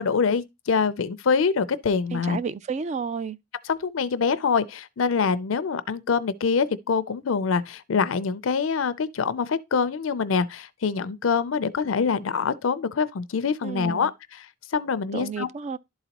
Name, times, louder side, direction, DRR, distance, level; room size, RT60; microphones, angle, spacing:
voice 1, 0.0-2.4 3.7-14.5 14.7-15.5, left 5 dB, 85° left, 0.5 m, -25 dB
voice 2, 2.1-3.4 13.6-14.1 15.1-15.8, right 5 dB, 35° right, 0.3 m, -31 dB
11.5 x 4.0 x 2.9 m
head